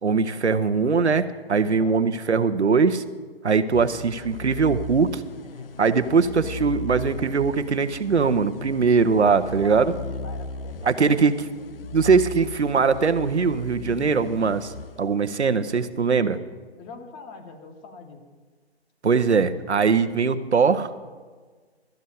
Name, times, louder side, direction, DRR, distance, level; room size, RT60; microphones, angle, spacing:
voice 1, 0.0-3.0 3.4-5.2 5.8-9.9 10.8-11.3 11.9-14.7 15.0-16.4 19.0-20.9, right 5 dB, 85° right, 10 dB, 0.9 m, -21 dB
voice 2, 1.6-2.0 3.7-3.9 9.4-11.2 16.8-18.2, left 4 dB, 15° left, 5 dB, 0.9 m, -43 dB
sound 1, 3.7-15.6, left 2 dB, 60° left, 0.8 m, -37 dB
13.0 x 6.3 x 8.4 m, 1.4 s
figure-of-eight pair, 135°, 33 cm